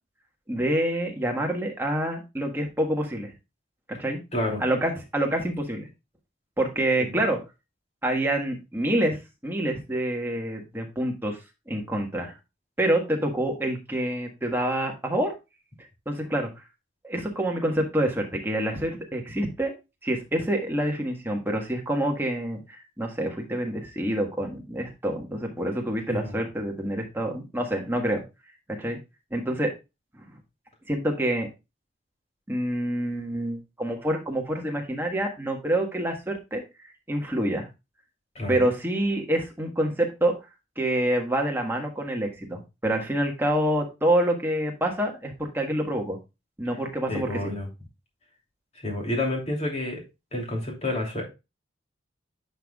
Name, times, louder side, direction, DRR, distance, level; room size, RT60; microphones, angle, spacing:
voice 1, 0.5-3.3 3.9-4.2 4.6-5.9 6.6-7.4 8.0-11.4 11.7-12.3 12.8-15.3 16.0-16.5 17.0-19.7 20.0-28.2 28.7-29.0 29.3-29.7 30.1-30.3 30.9-31.5 32.5-36.6 37.1-37.7 38.5-40.3 40.8-46.2 46.6-47.5, right 1 dB, 10° right, 1 dB, 1.5 m, -27 dB
voice 2, 4.3-4.6 7.0-7.1 26.1-26.3 38.3-38.6 47.1-47.7 48.8-50.0 50.3-51.2, left 1 dB, 35° left, 0 dB, 2.9 m, -29 dB
10.0 x 5.8 x 2.3 m, 0.25 s
head